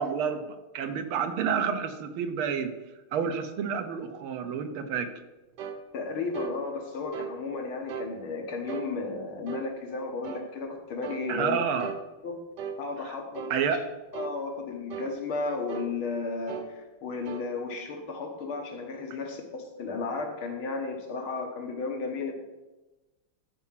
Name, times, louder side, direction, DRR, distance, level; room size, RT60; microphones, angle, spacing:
voice 1, 0.0-2.7 3.1-5.1 11.3-11.9 13.1-13.2 13.5-13.8, right 7 dB, 85° right, 8 dB, 1.8 m, -29 dB
sound 1, 5.6-5.8 6.3-6.6 7.1-7.4 7.9-8.1 8.7-8.9 9.5-9.7 10.2-10.5 11.0-11.3 11.8-12.0 12.6-12.8 13.3-13.6 14.1-14.4 14.9-15.1 15.7-15.9 16.5-16.7 17.3-17.5, right 6 dB, 65° right, 1.3 m, -37 dB
voice 2, 5.9-11.6 12.2-12.4 12.8-13.5 14.1-22.3, left 4 dB, 75° left, 2 dB, 2.2 m, -34 dB
12.5 x 4.8 x 5.7 m, 1.1 s
omnidirectional pair, 2.3 m